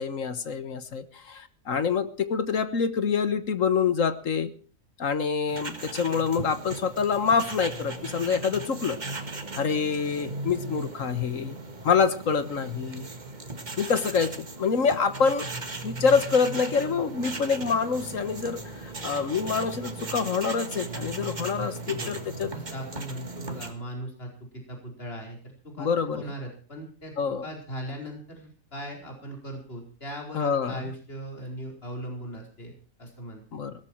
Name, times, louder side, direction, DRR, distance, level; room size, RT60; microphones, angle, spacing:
voice 1, 0.0-4.5 5.0-9.0 9.6-11.6 11.8-13.1 13.8-15.5 15.8-22.5 25.8-26.3 27.2-27.5 30.3-30.8 33.5-33.7, left 6 dB, 70° left, 12 dB, 1.7 m, -26 dB
sound 1, 5.5-23.7, right 2 dB, 35° right, 1.8 m, -37 dB
voice 2, 21.6-25.4 25.6-27.1 27.4-32.7 33.0-33.4, right 1 dB, 45° left, 1 dB, 5.0 m, -39 dB
18.0 x 13.5 x 4.6 m, 0.41 s
omnidirectional pair, 1.4 m